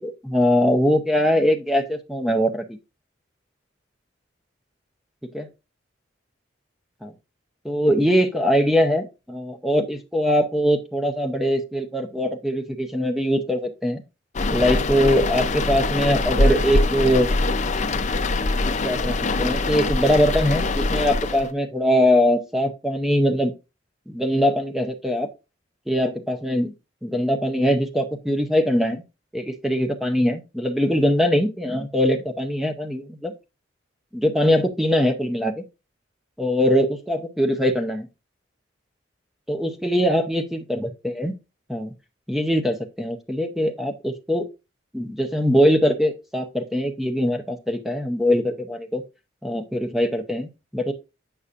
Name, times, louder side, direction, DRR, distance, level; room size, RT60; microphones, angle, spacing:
voice 1, 0.0-2.8 5.3-5.5 7.0-7.1 7.6-14.0 14.5-17.3 18.8-23.5 24.1-25.3 25.9-26.7 27.0-29.0 29.3-33.3 34.1-35.6 36.4-38.1 39.5-41.4 41.7-41.9 42.3-44.5 44.9-49.0 49.4-50.9, equal, ahead, 0.7 m, -22 dB
sound 1, 14.3-21.5, left 2 dB, 40° left, 0.5 m, -23 dB
8.3 x 5.5 x 2.5 m
head